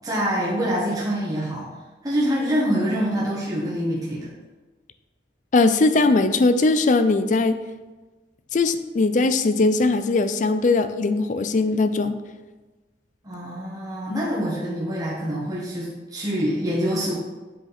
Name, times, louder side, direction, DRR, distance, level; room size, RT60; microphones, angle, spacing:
voice 1, 0.0-1.7 2.0-4.3 13.2-17.1, equal, 20° right, -6 dB, 1.3 m, -25 dB
voice 2, 5.5-7.6 8.5-12.2 14.1-14.2, left 3 dB, 40° left, 11 dB, 0.4 m, -20 dB
7.9 x 5.0 x 4.2 m, 1.2 s
head